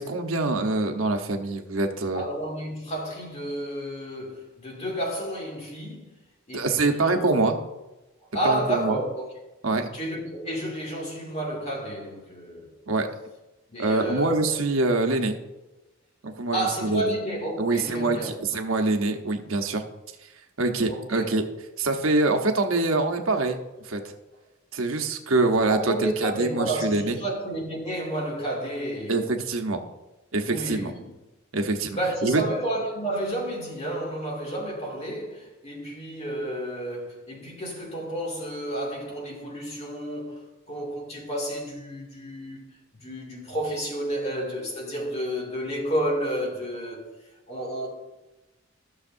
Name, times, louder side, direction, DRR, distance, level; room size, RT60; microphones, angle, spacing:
voice 1, 0.0-2.2 6.5-7.5 8.4-9.0 9.6-9.9 12.9-13.1 13.8-15.4 16.2-17.1 17.6-19.8 20.6-21.4 21.8-23.6 23.8-24.0 24.7-27.2 29.1-29.8 30.3-30.9 31.5-32.4, right 3 dB, 85° right, 1.0 m, -25 dB
voice 2, 2.1-6.1 6.5-7.5 8.3-9.3 9.9-12.7 13.7-14.5 16.5-18.3 20.9-21.4 25.7-29.3 30.5-31.1 31.9-40.4 40.7-47.1 47.5-47.9, right 1 dB, 30° left, 2.3 m, -31 dB
15.0 x 6.5 x 2.6 m
head